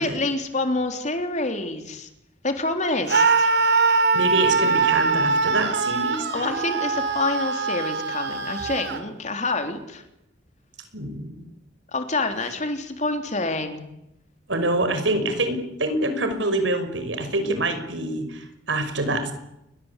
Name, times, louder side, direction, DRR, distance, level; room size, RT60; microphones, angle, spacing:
voice 1, 0.0-2.1 2.4-3.5 6.3-10.0 11.9-13.9, left 2 dB, 40° left, 6 dB, 3.7 m, -27 dB
Screaming, 3.1-9.0, right 4 dB, 65° right, 3.7 m, -22 dB
voice 2, 4.1-6.5 10.9-11.4 14.5-19.3, right 2 dB, 85° right, 9 dB, 5.8 m, -26 dB
29.0 x 23.0 x 8.4 m, 0.86 s
head